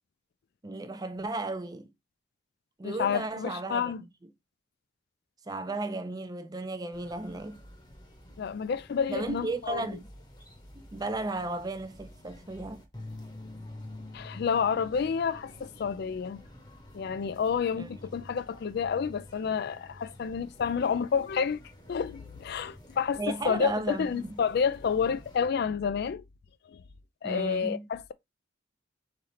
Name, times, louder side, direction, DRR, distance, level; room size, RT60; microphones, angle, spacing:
voice 1, 0.6-1.9 2.8-3.9 5.5-7.6 9.1-10.1 10.8-12.8 17.8-17.9 23.2-24.3 27.2-27.9, right 2 dB, 20° right, 0.4 m, -34 dB
voice 2, 2.8-4.0 8.4-9.9 14.1-16.4 16.9-21.6 21.9-26.2 26.7-26.8 27.2-28.1, left 6 dB, 55° left, 0.3 m, -29 dB
sound 1, 6.9-25.4, left 1 dB, 20° left, 1.0 m, -49 dB
3.7 x 3.3 x 4.1 m
head